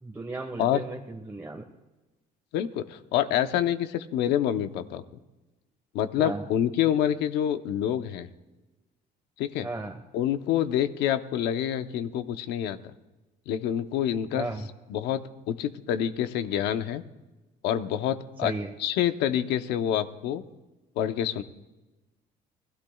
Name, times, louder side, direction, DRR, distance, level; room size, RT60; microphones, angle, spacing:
voice 1, 0.0-1.7 6.2-6.5 9.6-10.0 14.3-14.7 18.4-18.7, right 2 dB, 10° right, 1 dB, 1.3 m, -35 dB
voice 2, 2.5-5.0 5.9-8.3 9.4-9.7 10.1-12.8 13.5-14.5 14.9-17.0 17.6-18.5 18.8-20.4 21.0-21.4, left 10 dB, 90° left, 9 dB, 0.9 m, -27 dB
28.0 x 18.5 x 2.4 m, 1.1 s
cardioid pair, 110°, 17 cm